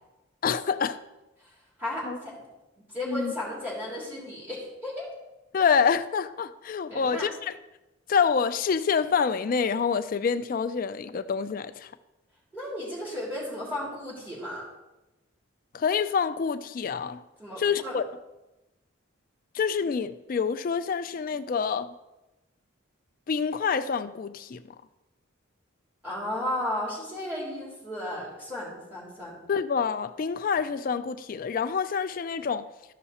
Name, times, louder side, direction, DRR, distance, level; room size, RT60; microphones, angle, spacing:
voice 1, 0.4-1.0 2.0-2.2 3.1-3.3 5.5-7.5 8.1-11.9 15.7-17.2 17.6-18.0 19.5-21.9 23.3-24.6 29.5-32.7, left 6 dB, 40° left, 0.3 m, -27 dB
voice 2, 1.8-2.3 2.9-5.1 6.9-7.3 12.5-14.7 17.4-18.0 26.0-29.3, left 1 dB, 10° right, 3.5 m, -34 dB
13.0 x 5.6 x 4.2 m
head